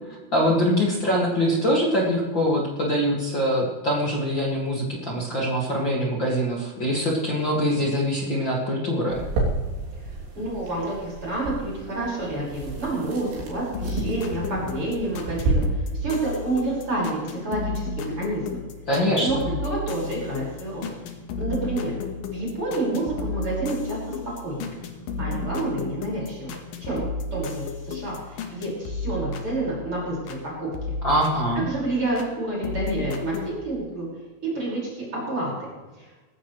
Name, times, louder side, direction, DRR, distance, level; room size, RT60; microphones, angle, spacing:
voice 1, 0.3-9.2 18.9-19.4 31.0-31.7, equal, 40° left, -3 dB, 1.8 m, -23 dB
sound 1, 9.1-15.5, right 3 dB, 75° right, 5.6 m, -31 dB
voice 2, 10.4-18.6 19.2-20.9 21.4-21.9 22.2-24.0 24.4-24.7 25.2-26.5 26.8-27.0 27.3-30.7 31.5-34.1 34.4-35.5 35.9-36.1, right 2 dB, 25° right, -4 dB, 6.2 m, -29 dB
sound 2, 13.7-30.4 30.7-32.3 32.6-33.5, left 3 dB, 60° left, 2.5 m, -33 dB
20.0 x 15.0 x 3.3 m, 1.3 s
omnidirectional pair, 5.6 m